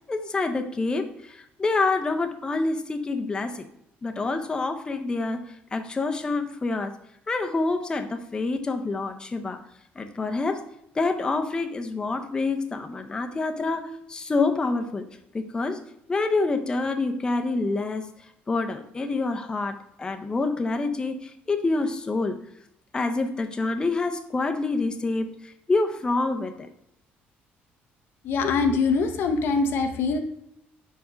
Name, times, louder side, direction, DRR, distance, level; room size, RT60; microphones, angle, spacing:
voice 1, 0.1-3.7 4.0-7.0 7.3-9.6 10.0-10.6 10.9-15.1 15.3-15.8 16.1-18.1 18.5-22.4 22.9-26.7, left 3 dB, 20° left, 6 dB, 0.6 m, -27 dB
voice 2, 28.2-30.2, left 4 dB, 65° left, 5 dB, 0.7 m, -23 dB
5.0 x 4.8 x 5.0 m, 0.76 s
cardioid pair, 125°, 4 cm